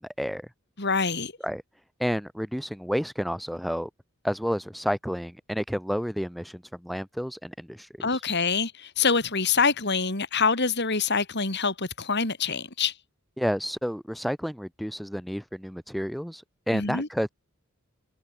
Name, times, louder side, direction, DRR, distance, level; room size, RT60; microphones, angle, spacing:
voice 1, 0.2-0.5 1.4-1.6 2.0-3.9 4.2-8.1 13.4-17.3, equal, ahead, 3.2 m, -30 dB
voice 2, 0.8-1.3 8.0-12.9 16.7-17.1, left 5 dB, 55° left, 4.3 m, -25 dB
head